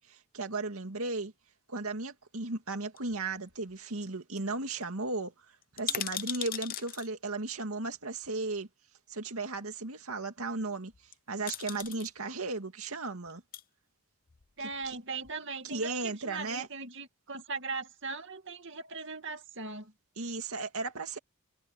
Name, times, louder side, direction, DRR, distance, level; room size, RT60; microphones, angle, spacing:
voice 1, 0.0-1.3 1.7-5.3 5.7-8.7 9.1-10.9 11.3-13.4 14.8-15.0 15.6-16.7 20.2-21.2, right 3 dB, 80° right, 2.3 m, -35 dB
sound 1, 3.0-3.8 4.1-4.2 4.4-4.5 4.8-4.9 5.6-7.1 8.2-8.3 10.9-11.1 11.5-12.1 13.3-13.6 14.3-15.0 15.2-15.3, left 11 dB, 40° left, 0.7 m, -38 dB
voice 2, 14.6-19.9, right 4 dB, 60° right, 2.4 m, -39 dB
head